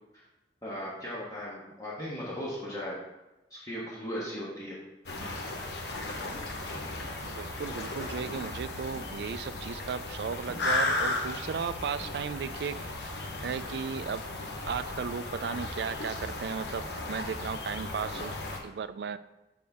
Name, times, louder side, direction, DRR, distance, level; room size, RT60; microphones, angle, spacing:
voice 1, 0.6-3.0 3.5-4.8, equal, 20° left, -6 dB, 1.3 m, -37 dB
sound 1, 5.1-18.6, left 2 dB, 70° left, 1.0 m, -35 dB
voice 2, 7.2-13.1 13.4-14.2 14.7-18.3 18.6-19.2, right 6 dB, 70° right, 13 dB, 0.3 m, -35 dB
6.8 x 5.2 x 3.6 m, 0.99 s
head